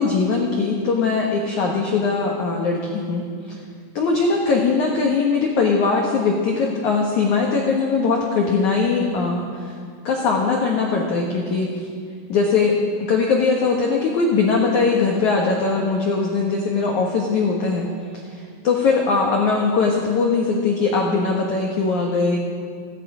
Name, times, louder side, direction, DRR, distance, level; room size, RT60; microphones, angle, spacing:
voice 1, 0.0-3.2 3.5-3.6 3.9-9.8 10.0-11.9 12.3-12.7 13.1-17.9 18.3-22.4, left 4 dB, 85° left, -1 dB, 1.7 m, -20 dB
17.5 x 16.0 x 5.0 m, 2.1 s
omnidirectional pair, 5.6 m